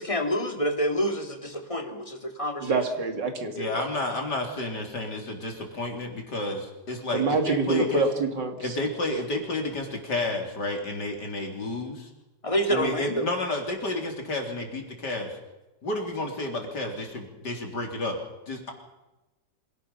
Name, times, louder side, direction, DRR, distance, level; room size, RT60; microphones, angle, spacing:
voice 1, 0.0-2.8 12.4-13.3, equal, 20° left, 5 dB, 2.2 m, -27 dB
voice 2, 2.6-3.9 7.1-8.7, right 3 dB, 85° right, 5 dB, 3.2 m, -26 dB
voice 3, 3.5-8.1 8.6-12.1 12.7-15.4 15.8-18.2 18.5-18.7, left 2 dB, 70° left, 2 dB, 4.2 m, -31 dB
25.5 x 18.0 x 5.7 m, 1.0 s
omnidirectional pair, 1.9 m